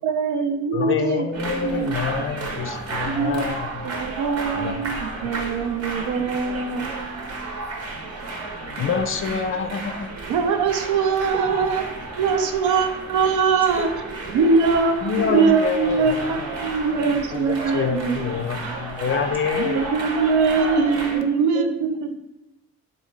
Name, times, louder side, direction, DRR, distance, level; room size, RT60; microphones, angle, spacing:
voice 1, 0.0-1.2 1.5-2.2 3.1-3.5 3.8-7.6 10.3-11.8 12.2-13.9 14.3-14.9 15.3-18.3 19.5-22.1, right 5 dB, 80° right, 6 dB, 0.5 m, -22 dB
voice 2, 0.7-3.9 4.6-4.7 8.8-10.1 15.0-16.5 17.3-19.9, left 6 dB, 45° left, 6 dB, 0.4 m, -26 dB
sound 1, 1.3-21.2, right 2 dB, 55° right, 0.8 m, -32 dB
voice 3, 11.3-11.7 13.8-13.9 14.3-14.8 15.2-15.8 17.0-18.0 18.3-19.0 19.3-19.4 21.1-22.1, right 3 dB, 5° right, 0 dB, 0.6 m, -31 dB
3.7 x 2.2 x 3.1 m, 0.97 s
cardioid pair, 90°, 30 cm